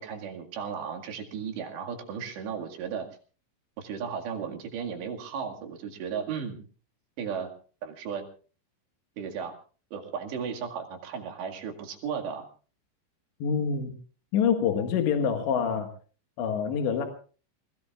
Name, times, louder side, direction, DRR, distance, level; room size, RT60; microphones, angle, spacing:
voice 1, 0.0-3.1 3.8-6.7 7.2-7.5 7.8-8.2 9.2-9.5 9.9-12.5, right 7 dB, 65° right, 3 dB, 4.1 m, -35 dB
voice 2, 13.4-14.0 14.3-15.9 16.4-17.1, left 7 dB, 70° left, 4 dB, 3.8 m, -26 dB
28.0 x 20.5 x 2.4 m, 0.39 s
omnidirectional pair, 5.6 m